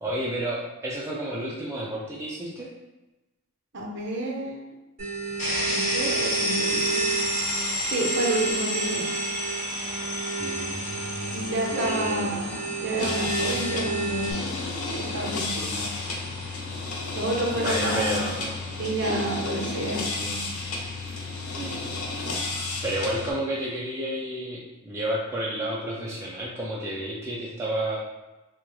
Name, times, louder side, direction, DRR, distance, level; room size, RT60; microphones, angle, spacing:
voice 1, 0.0-2.7 10.4-12.4 17.5-18.6 21.6-21.9 22.8-28.0, right 1 dB, 10° right, -6 dB, 0.4 m, -31 dB
voice 2, 3.7-4.7 5.7-7.0 7.9-9.1 11.3-14.4 15.1-15.9 17.1-18.3 18.7-20.5, right 1 dB, 50° right, -1 dB, 0.7 m, -30 dB
sound 1, 5.0-14.3, right 4 dB, 35° right, 1.2 m, -31 dB
sound 2, 5.4-19.1, left 1 dB, 35° left, 1.3 m, -32 dB
sound 3, 13.0-23.3, left 3 dB, 75° left, 0.6 m, -32 dB
3.4 x 2.9 x 3.1 m, 1.0 s
head